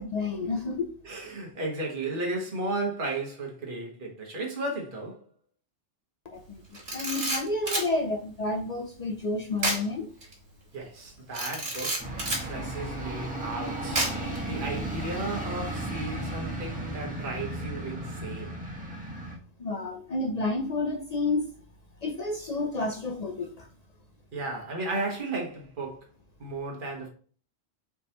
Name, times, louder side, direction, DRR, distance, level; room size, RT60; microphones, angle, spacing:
voice 1, 0.0-0.9 6.3-6.6 6.9-10.1 19.6-21.5 22.0-23.7, left 2 dB, 50° left, 0.5 m, -30 dB
voice 2, 1.0-5.2 10.7-14.0 14.5-18.5 24.3-26.1 26.4-27.1, right 2 dB, 45° right, 1.4 m, -34 dB
Camera, 6.7-7.9 9.6-9.9 10.2-10.3 11.3-12.5 14.0-14.4, right 2 dB, 75° right, 2.0 m, -29 dB
sound 1, 12.0-19.4, right 1 dB, 5° right, 1.4 m, -35 dB
4.9 x 3.6 x 2.9 m
omnidirectional pair, 1.2 m